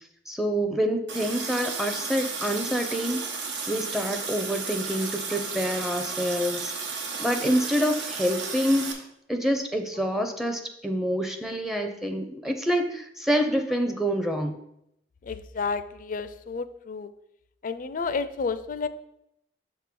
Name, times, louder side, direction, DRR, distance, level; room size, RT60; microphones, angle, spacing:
voice 1, 0.3-3.2 3.7-6.7 7.2-14.6, equal, ahead, 4 dB, 0.5 m, -27 dB
Water tap faucet, 1.1-8.9, right 5 dB, 85° right, 1.0 m, -33 dB
voice 2, 15.2-17.1 17.6-18.9, left 4 dB, 50° left, 12 dB, 0.4 m, -31 dB
6.2 x 3.6 x 5.9 m, 0.79 s
head